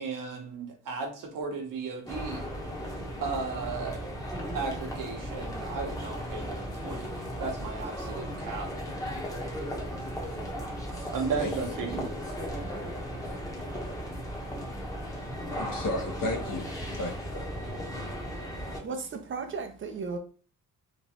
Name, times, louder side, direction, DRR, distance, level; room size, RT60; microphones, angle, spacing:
voice 1, 0.0-2.4 3.2-4.1 4.5-7.1 7.4-8.7 11.1-12.0, right 5 dB, 65° right, 3 dB, 0.9 m, -35 dB
sound 1, 2.1-18.8, equal, 10° left, 0.8 m, -36 dB
voice 2, 15.5-17.5, left 1 dB, 65° left, 2 dB, 0.9 m, -34 dB
voice 3, 17.7-20.2, right 4 dB, 35° right, 6 dB, 0.5 m, -37 dB
3.0 x 2.2 x 2.8 m, 0.41 s
cardioid pair, 80°, 35 cm